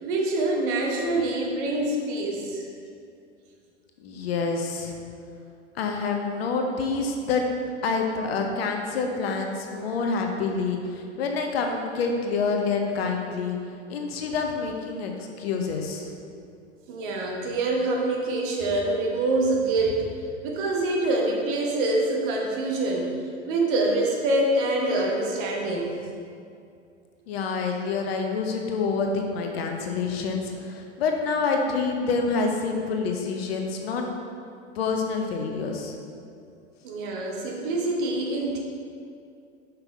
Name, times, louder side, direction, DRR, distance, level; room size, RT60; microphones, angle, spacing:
voice 1, 0.0-2.7 16.9-20.1 20.4-23.1 23.5-26.0 36.8-38.6, right 2 dB, 45° right, 0 dB, 1.1 m, -25 dB
voice 2, 4.0-4.9 5.7-7.4 7.8-13.6 13.9-16.1 27.3-34.2 34.7-35.9, left 4 dB, 55° left, 3 dB, 0.9 m, -27 dB
5.7 x 5.4 x 4.0 m, 2.4 s
figure-of-eight pair, 90°, 36 cm